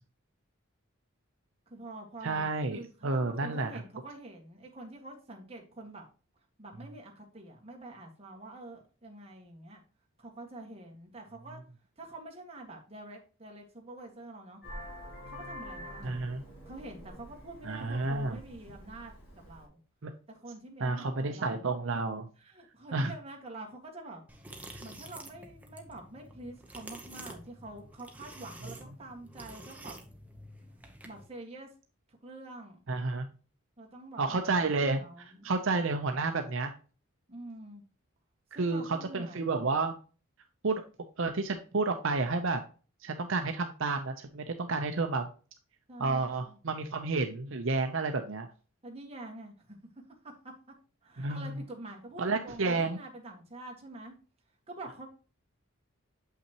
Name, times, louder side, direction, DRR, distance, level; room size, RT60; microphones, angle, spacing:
voice 1, 1.7-6.0 6.6-9.8 10.2-11.6 12.0-14.6 15.3-16.2 16.7-19.8 20.3-21.6 22.4-24.2 24.6-30.0 31.0-31.7 32.1-32.8 33.8-34.7 35.0-35.5 37.3-37.8 38.5-39.7 45.9-46.6 48.8-49.8 50.2-50.5 51.0-54.1 54.7-55.1, right 2 dB, 25° right, 0 dB, 1.6 m, -46 dB
voice 2, 2.2-3.8 16.0-16.4 17.6-18.4 20.0-20.1 20.8-22.3 22.9-23.1 32.9-33.3 34.2-36.7 38.6-40.0 40.6-40.8 41.2-42.6 43.0-45.3 46.0-48.5 51.2-51.6 52.2-53.0, right 3 dB, 65° right, 6 dB, 0.6 m, -30 dB
Vehicle horn car horn honking, 14.6-19.7, equal, 50° left, 3.2 m, -47 dB
sound 1, 24.3-31.3, right 1 dB, 5° right, 0.8 m, -49 dB
7.6 x 5.7 x 2.9 m, 0.36 s
head